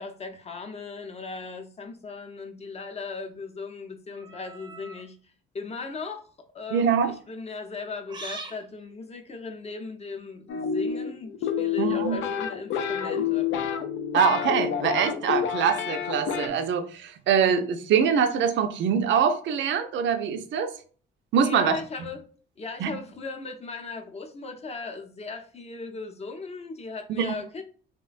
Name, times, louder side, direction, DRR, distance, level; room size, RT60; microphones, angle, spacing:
voice 1, 0.0-5.2 5.5-6.2 6.5-13.5 21.4-22.3 22.6-27.6, left 4 dB, 35° left, 0.6 m, -37 dB
sound 1, 4.1-5.1 5.9-6.2 8.1-8.6, right 2 dB, 20° right, 0.6 m, -41 dB
voice 2, 6.7-7.1 11.8-12.2 14.1-20.7 21.3-21.7 22.8-22.9 27.2-27.3, right 7 dB, 70° right, 0.5 m, -24 dB
sound 2, 10.5-16.5, left 8 dB, 80° left, 0.4 m, -28 dB
3.1 x 2.1 x 2.4 m
cardioid pair, 90°, 20 cm